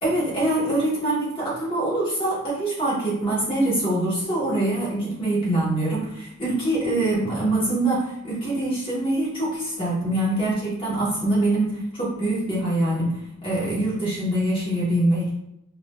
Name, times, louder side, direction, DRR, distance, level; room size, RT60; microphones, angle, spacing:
voice 1, 0.0-13.2 13.4-15.3, right 1 dB, 25° left, -7 dB, 1.3 m, -24 dB
4.7 x 2.5 x 2.3 m, 0.80 s
head